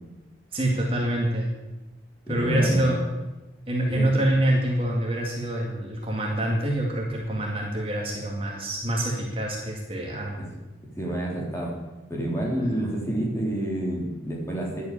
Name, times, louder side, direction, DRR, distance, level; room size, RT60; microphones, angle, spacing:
voice 1, 0.5-1.5 2.3-3.0 3.7-10.5, right 1 dB, 30° right, -1 dB, 2.2 m, -26 dB
voice 2, 2.3-2.9 3.9-4.1 11.0-11.7 12.1-14.8, right 1 dB, 15° left, -3 dB, 3.4 m, -28 dB
11.0 x 8.5 x 8.7 m, 1.1 s
head